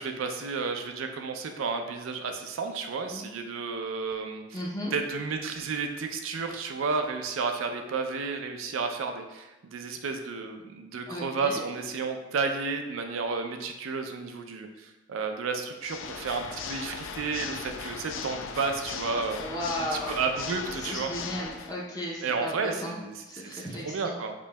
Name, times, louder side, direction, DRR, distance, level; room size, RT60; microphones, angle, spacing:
voice 1, 0.0-4.6 4.9-19.4 19.8-21.1 22.2-24.3, right 4 dB, 85° right, 5 dB, 0.4 m, -32 dB
voice 2, 4.5-4.9 11.1-11.6 19.4-20.2 20.8-24.2, equal, 20° left, -5 dB, 0.5 m, -35 dB
Water / Mechanisms, 15.8-21.8, left 5 dB, 75° left, 0.3 m, -38 dB
5.0 x 2.7 x 2.2 m, 1.0 s
head